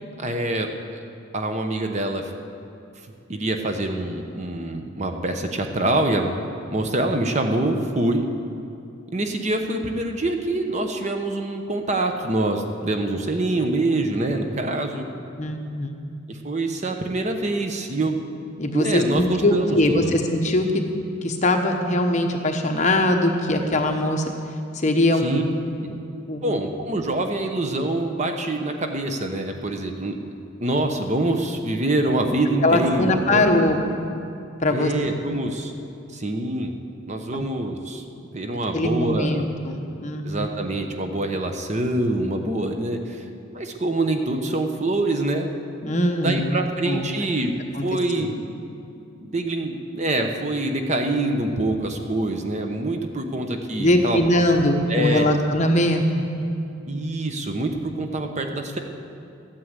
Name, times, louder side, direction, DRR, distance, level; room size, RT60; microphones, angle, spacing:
voice 1, 0.2-1.0 1.3-2.3 3.3-6.3 6.7-8.3 9.1-15.1 16.3-18.2 18.7-20.1 25.2-25.4 25.8-25.9 26.4-30.1 30.6-33.5 34.7-35.7 36.1-36.7 37.1-38.0 38.3-39.5 40.2-43.3 43.5-45.5 46.2-47.6 47.8-48.4 49.2-54.4 54.9-55.4 56.9-58.8, right 1 dB, 35° right, 5 dB, 0.9 m, -25 dB
voice 2, 15.4-15.9 18.6-20.8 21.2-24.2 24.8-25.4 26.3-26.6 32.6-33.8 34.6-34.9 37.3-37.4 38.7-40.5 45.8-47.1 47.7-47.8 48.2-48.3 53.8-56.2, left 1 dB, 35° left, 4 dB, 1.1 m, -21 dB
12.5 x 9.4 x 8.1 m, 2.6 s
head